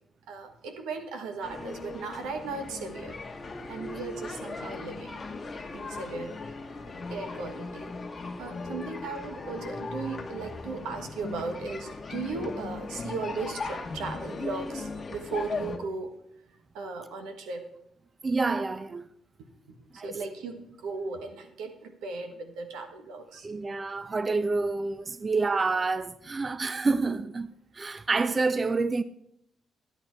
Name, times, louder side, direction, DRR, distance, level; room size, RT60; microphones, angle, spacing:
voice 1, 0.3-3.1 3.7-5.2 5.7-6.4 7.1-7.9 8.4-16.1 16.7-17.7 20.0-23.5, right 4 dB, 90° right, 1.5 m, -37 dB
sound 1, 1.4-15.8, left 3 dB, 30° left, 1.4 m, -38 dB
voice 2, 18.2-19.0 19.9-20.2 23.4-29.0, right 3 dB, 30° right, 0.4 m, -28 dB
12.0 x 8.8 x 4.6 m
cardioid pair, 90°, 0 cm